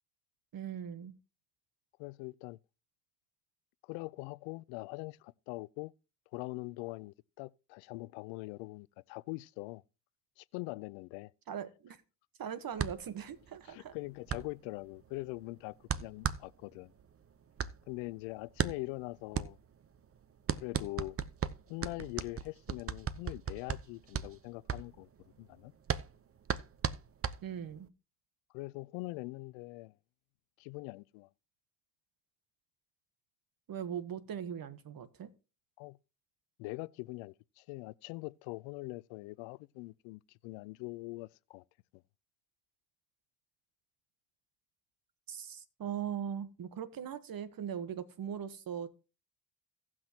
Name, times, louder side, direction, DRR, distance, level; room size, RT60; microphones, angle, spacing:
voice 1, 0.5-1.1 11.5-12.0 12.4-13.9 27.4-27.9 33.7-35.3 45.3-48.9, right 8 dB, 45° right, 1.3 m, -40 dB
voice 2, 2.0-2.6 3.8-5.9 6.3-9.8 10.4-11.3 13.6-16.9 17.9-19.6 20.6-21.2 21.7-25.1 25.4-25.7 28.5-29.9 30.6-31.3 35.8-36.0 36.6-41.6, left 23 dB, 75° left, 0.5 m, -43 dB
sound 1, 12.8-27.9, right 7 dB, 30° right, 0.7 m, -38 dB
17.5 x 6.1 x 2.9 m
hypercardioid pair, 60°, 47 cm